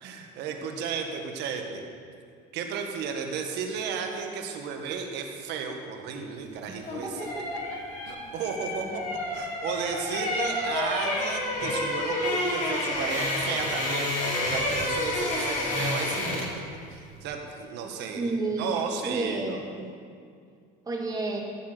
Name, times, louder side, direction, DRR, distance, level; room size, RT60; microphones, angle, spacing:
voice 1, 0.0-1.8 2.5-7.3 8.0-9.0 9.3-16.5 16.9-19.4, right 6 dB, 65° right, 3 dB, 1.6 m, -33 dB
sound 1, 6.6-16.6 16.9-17.1, left 1 dB, 40° left, 3.4 m, -29 dB
voice 2, 6.7-7.8 18.1-19.9 20.9-21.4, right 2 dB, 20° right, 1 dB, 1.7 m, -32 dB
15.0 x 5.9 x 6.7 m, 2.2 s
cardioid pair, 135°, 19 cm